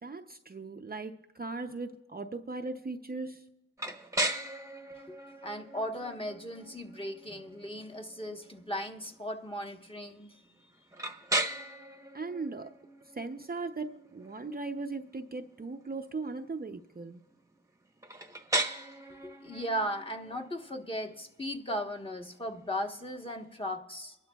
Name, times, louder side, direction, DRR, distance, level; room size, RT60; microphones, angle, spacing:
voice 1, 0.0-3.4 12.1-12.8 13.1-17.2, right 3 dB, 30° right, 0.6 m, -38 dB
sound 1, 3.8-23.5, right 2 dB, 10° right, 1.0 m, -39 dB
voice 2, 5.4-10.4 19.2-24.2, equal, 15° left, 1.2 m, -37 dB
23.5 x 12.0 x 2.3 m
cardioid pair, 55°, 31 cm